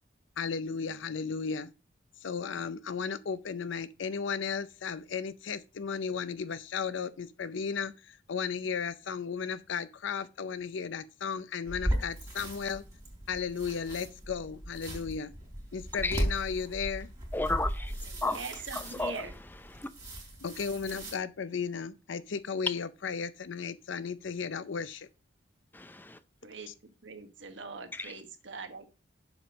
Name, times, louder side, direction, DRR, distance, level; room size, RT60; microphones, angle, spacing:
voice 1, 0.4-1.7 2.2-12.8 13.3-15.3 15.7-17.1 20.4-25.1 26.7-26.8, left 6 dB, 75° left, 0.5 m, -35 dB
sound 1, 11.6-21.1, right 1 dB, 15° right, 3.4 m, -37 dB
voice 2, 17.3-17.9 18.2-18.4 18.7-19.3 19.7-19.9 25.7-26.2 27.9-28.1, left 2 dB, 10° left, 0.5 m, -33 dB
voice 3, 18.0-19.3 26.4-26.7 27.0-28.9, right 4 dB, 70° right, 1.2 m, -42 dB
7.1 x 5.1 x 6.1 m
head